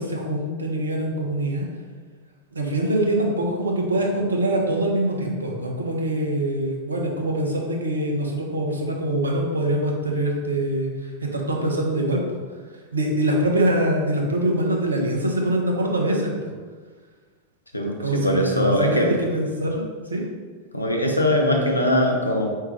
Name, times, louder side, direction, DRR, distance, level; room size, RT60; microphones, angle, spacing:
voice 1, 0.0-1.7 2.5-12.4 12.9-16.3 18.0-19.8 20.1-20.2, right 1 dB, 75° right, 0 dB, 0.8 m, -24 dB
voice 2, 17.7-19.1 20.7-22.5, equal, 85° left, 1 dB, 0.7 m, -21 dB
4.7 x 3.3 x 3.2 m, 1.5 s
figure-of-eight pair, 90°, 0 cm